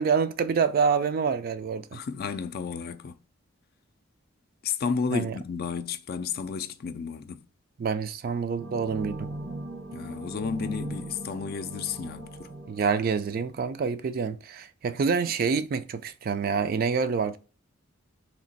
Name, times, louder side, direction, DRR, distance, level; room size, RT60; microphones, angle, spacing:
voice 1, 0.0-2.0 5.1-5.3 7.8-9.3 12.7-17.4, right 5 dB, 45° right, 0.3 m, -27 dB
voice 2, 1.9-3.2 4.6-7.5 9.9-12.5, left 5 dB, 50° left, 0.4 m, -32 dB
sound 1, 8.6-13.9, right 1 dB, 90° right, 1.5 m, -39 dB
3.2 x 2.9 x 4.0 m
head